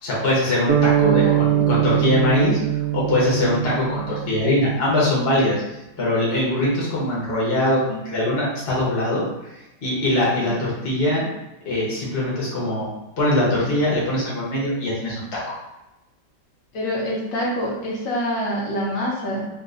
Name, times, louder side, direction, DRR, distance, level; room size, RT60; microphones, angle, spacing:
voice 1, 0.0-2.6 2.9-5.6 6.0-9.2 9.8-11.3 11.6-12.9 13.2-15.4, left 1 dB, 40° left, -7 dB, 1.1 m, -22 dB
sound 1, 0.7-5.0, right 12 dB, 60° right, 0.8 m, -22 dB
voice 2, 0.9-2.2 10.4-10.5 16.7-19.5, equal, 80° left, -4 dB, 1.5 m, -26 dB
3.8 x 2.5 x 2.5 m, 0.96 s
omnidirectional pair, 2.0 m